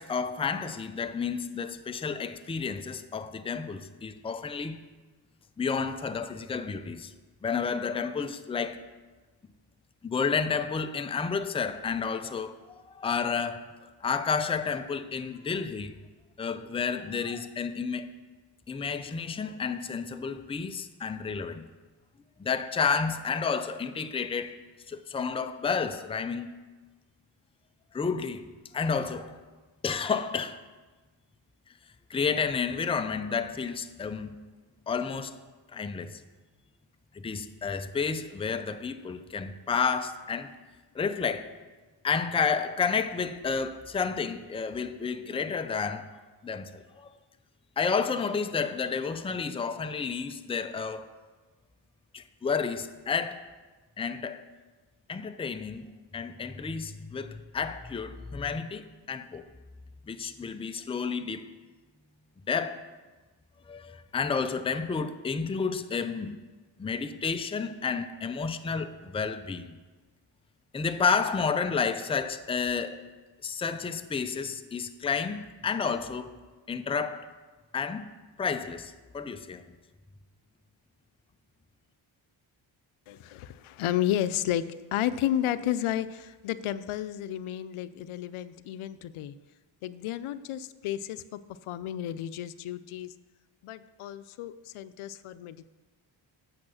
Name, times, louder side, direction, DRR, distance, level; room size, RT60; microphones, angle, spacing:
voice 1, 0.0-4.8 5.6-7.1 7.4-8.8 10.0-12.6 12.9-13.6 14.0-16.0 16.4-18.1 18.7-21.7 22.4-24.6 24.9-26.5 27.9-28.5 28.7-29.4 29.8-30.6 32.1-34.4 34.9-35.4 35.7-36.2 37.1-40.5 40.9-41.5 42.0-46.1 46.4-47.1 47.8-51.1 52.1-53.4 54.0-54.5 55.1-55.8 56.1-59.4 60.1-61.5 62.5-62.8 63.7-66.4 66.8-69.8 70.7-73.0 73.4-76.4 76.7-77.3 77.7-78.1 78.4-79.6, left 5 dB, 15° left, 0.4 m, -31 dB
voice 2, 83.1-84.6 84.9-89.3 89.8-91.4 91.7-93.1 93.6-95.7, left 12 dB, 90° left, 0.6 m, -32 dB
8.6 x 6.7 x 6.3 m
wide cardioid pair, 125°, 48 cm